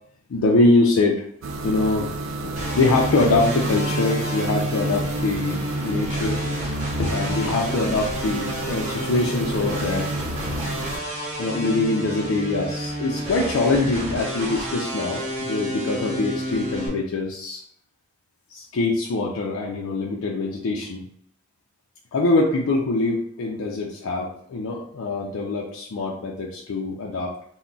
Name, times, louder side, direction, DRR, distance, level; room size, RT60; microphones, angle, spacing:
voice 1, 0.3-1.2 1.6-2.1 2.4-6.4 7.0-10.1 11.4-17.6 18.5-21.1 22.1-27.4, left 2 dB, 75° left, -2 dB, 0.4 m, -23 dB
sound 1, 1.4-11.0, right 2 dB, 65° right, 0.4 m, -29 dB
sound 2, 2.6-16.9, right 1 dB, 35° right, 0.9 m, -31 dB
2.3 x 2.1 x 3.8 m, 0.64 s
head